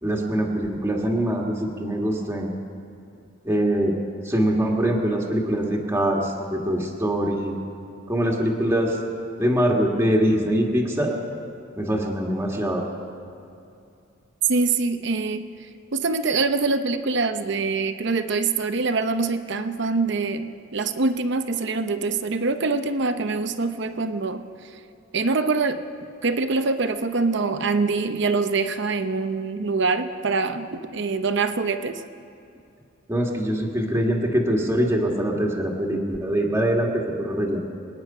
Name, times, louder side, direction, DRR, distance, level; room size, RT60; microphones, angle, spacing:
voice 1, 0.0-2.5 3.4-3.9 4.2-7.5 8.1-9.0 9.4-11.2 11.8-12.8 33.1-37.7, right 1 dB, 15° right, -1 dB, 1.8 m, -23 dB
voice 2, 14.5-15.4 15.9-24.5 25.1-25.8 26.2-32.0, right 3 dB, 65° right, 9 dB, 0.8 m, -24 dB
26.0 x 9.6 x 5.6 m, 2.5 s
head